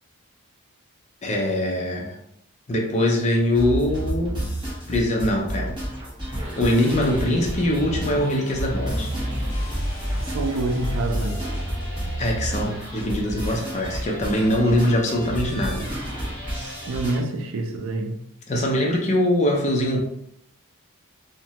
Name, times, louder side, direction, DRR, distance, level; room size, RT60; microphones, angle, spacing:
voice 1, 1.2-2.1 2.7-4.4 4.9-5.8 6.6-9.1 12.2-15.9 18.5-20.0, left 1 dB, 30° left, 0.5 m, -22 dB
sound 1, 3.5-17.2, equal, 20° right, 1.0 m, -30 dB
sound 2, 6.2-11.5, equal, 60° left, 0.8 m, -39 dB
voice 2, 10.2-11.4 16.9-18.2, right 2 dB, 60° right, 0.4 m, -27 dB
2.7 x 2.2 x 2.8 m
head